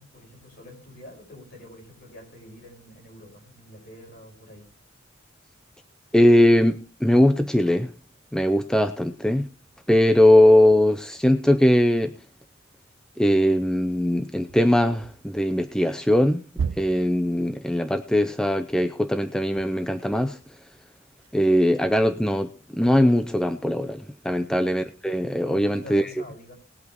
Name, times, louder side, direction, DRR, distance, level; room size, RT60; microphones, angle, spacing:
voice 1, 0.0-4.6 24.2-24.6 25.4-26.5, left 1 dB, 55° left, 0 dB, 5.4 m, -46 dB
voice 2, 6.1-7.9 8.3-9.5 9.9-12.1 13.2-16.4 16.8-20.4 21.3-26.0, left 1 dB, 5° left, 8 dB, 0.5 m, -20 dB
sound 1, 14.5-15.4 15.8-16.1 16.5-18.1 19.4-20.4 21.2-22.5, right 6 dB, 85° right, 0.4 m, -36 dB
20.0 x 8.3 x 3.0 m, 0.38 s
head